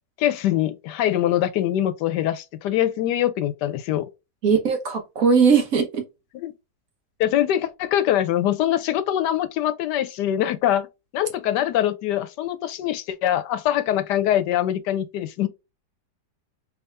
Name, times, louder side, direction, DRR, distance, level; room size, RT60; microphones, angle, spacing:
voice 1, 0.2-4.1 6.3-6.5 7.2-10.9 11.1-15.5, left 12 dB, 80° left, 1.2 m, -23 dB
voice 2, 4.4-6.0, right 6 dB, 55° right, 1.3 m, -19 dB
3.5 x 3.3 x 2.5 m
omnidirectional pair, 1.8 m